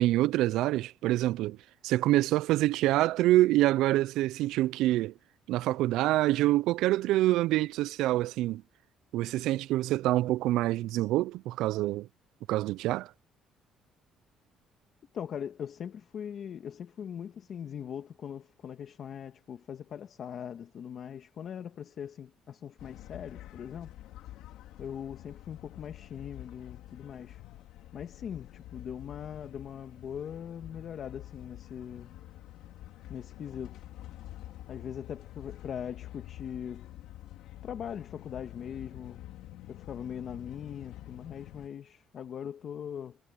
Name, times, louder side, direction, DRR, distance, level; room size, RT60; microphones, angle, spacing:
voice 1, 0.0-1.6 1.8-5.1 5.5-8.6 9.1-12.1 12.5-13.1, right 16 dB, 85° right, 0.4 m, -26 dB
voice 2, 15.1-23.9 24.8-27.4 27.9-32.1 33.1-33.8 34.7-36.9 37.6-39.2 39.7-43.2, left 8 dB, 50° left, 1.9 m, -41 dB
sound 1, 22.8-41.7, left 14 dB, 85° left, 3.4 m, -48 dB
cardioid pair, 115°, 0 cm